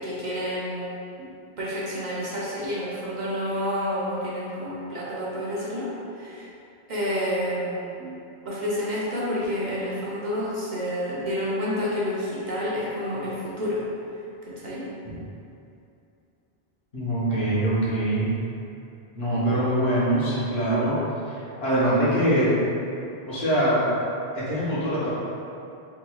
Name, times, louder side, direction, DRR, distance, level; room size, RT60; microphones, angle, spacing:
voice 1, 0.0-1.3 1.6-6.5 6.9-13.9 14.5-14.9, equal, 55° right, -7 dB, 0.6 m, -29 dB
voice 2, 16.9-18.3 19.1-21.0 21.3-22.5 23.3-23.9 24.3-25.1, right 1 dB, 75° left, -9 dB, 1.2 m, -23 dB
3.8 x 2.9 x 2.3 m, 2.7 s
omnidirectional pair, 1.1 m